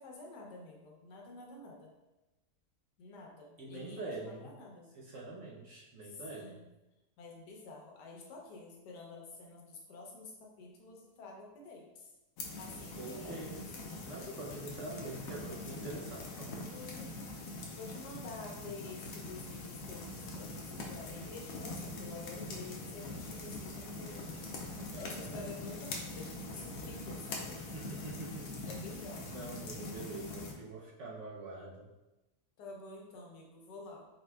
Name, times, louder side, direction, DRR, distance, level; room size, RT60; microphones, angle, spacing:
voice 1, 0.0-1.9 3.0-4.9 6.1-6.6 7.2-12.1 12.6-13.5 14.3-14.4 16.7-24.3 24.9-27.6 28.6-29.5 32.6-34.0, left 3 dB, 90° left, 0 dB, 1.4 m, -49 dB
voice 2, 3.6-4.5 4.9-6.6 13.0-13.7 14.0-16.7 24.9-25.3 27.6-28.7 29.3-31.9, right 2 dB, 60° right, -4 dB, 0.9 m, -45 dB
sound 1, 12.4-30.5, left 2 dB, 65° left, 1.0 m, -43 dB
4.1 x 3.9 x 2.3 m, 1.0 s
omnidirectional pair, 1.7 m